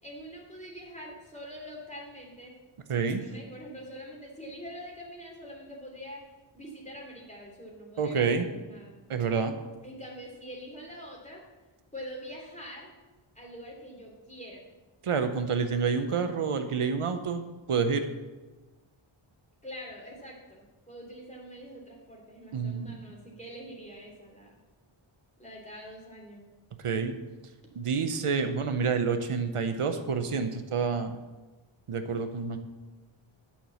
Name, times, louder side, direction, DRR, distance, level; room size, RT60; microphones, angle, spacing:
voice 1, 0.0-2.5 3.0-6.2 6.5-9.0 9.8-11.4 11.9-12.9 13.3-14.6 19.6-24.6 25.4-26.4, equal, 15° left, -2 dB, 3.1 m, -44 dB
voice 2, 2.9-3.2 8.0-8.5 9.1-9.5 15.0-17.4 17.7-18.0 22.5-23.0 26.8-27.2 27.8-31.2 31.9-32.6, right 5 dB, 90° right, 8 dB, 0.9 m, -28 dB
10.0 x 5.9 x 7.0 m, 1.2 s
wide cardioid pair, 70°, 50 cm